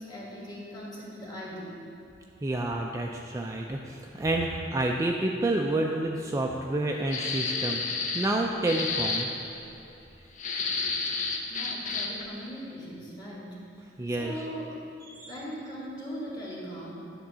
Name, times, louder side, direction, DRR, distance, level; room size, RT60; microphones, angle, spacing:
voice 1, 0.0-1.8 11.5-13.6 14.1-14.7 15.2-16.9, equal, 25° left, -5 dB, 1.6 m, -39 dB
voice 2, 2.4-7.8 8.1-9.3 14.0-14.5 15.0-15.3, right 2 dB, 15° right, 0 dB, 0.3 m, -29 dB
sound 1, 7.1-8.3 8.7-9.3 10.4-12.2, left 4 dB, 45° left, 0.7 m, -30 dB
9.8 x 3.7 x 6.1 m, 2.9 s
head